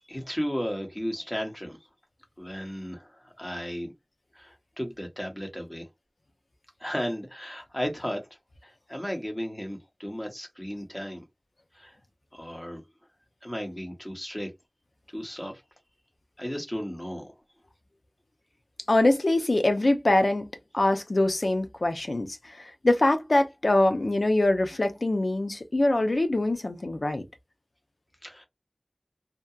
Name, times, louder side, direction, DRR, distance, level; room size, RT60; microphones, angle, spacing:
voice 1, 0.1-1.8 2.4-3.9 4.3-5.9 6.8-8.2 8.6-11.2 11.7-12.0 12.3-12.8 13.4-14.5 15.1-15.6 16.4-17.3 28.2-28.5, equal, 20° left, 0.9 m, -34 dB
voice 2, 18.9-20.4 20.7-27.2, left 2 dB, 90° left, 0.4 m, -24 dB
2.8 x 2.2 x 2.3 m
wide cardioid pair, 45°, 0 cm